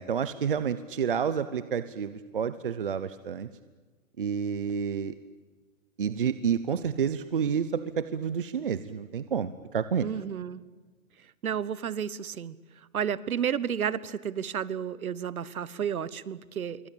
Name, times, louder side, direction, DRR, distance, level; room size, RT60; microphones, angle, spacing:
voice 1, 0.0-3.5 4.2-5.1 6.0-10.1, right 7 dB, 40° right, 13 dB, 0.8 m, -29 dB
voice 2, 10.0-10.6 11.4-12.6 12.9-16.9, right 8 dB, 75° right, 19 dB, 1.3 m, -31 dB
26.5 x 24.0 x 8.7 m, 1.3 s
hypercardioid pair, 175°, 43 cm